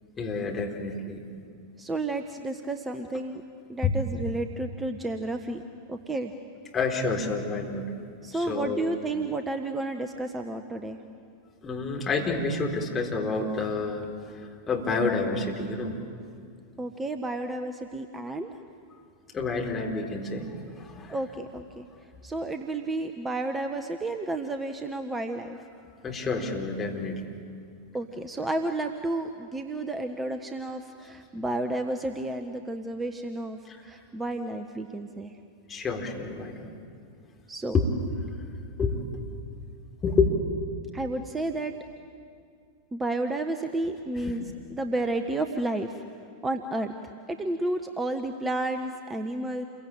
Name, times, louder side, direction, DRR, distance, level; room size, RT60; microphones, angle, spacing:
voice 1, 0.2-1.2 3.8-4.0 6.7-8.8 11.6-16.0 19.3-21.2 26.0-27.2 33.7-33.8 35.7-36.7 37.7-38.1 38.8-39.3 40.0-40.3 44.2-44.3, left 4 dB, 20° left, 0 dB, 4.1 m, -29 dB
voice 2, 1.8-3.4 3.7-5.6 5.9-6.3 8.2-11.0 16.8-18.5 21.1-21.9 22.2-25.6 27.9-35.3 37.5-37.7 40.9-41.7 42.9-44.4 44.7-46.0 46.4-49.6, right 2 dB, 15° right, 7 dB, 1.2 m, -31 dB
29.0 x 23.0 x 9.0 m, 2.3 s
figure-of-eight pair, 90°, 0 cm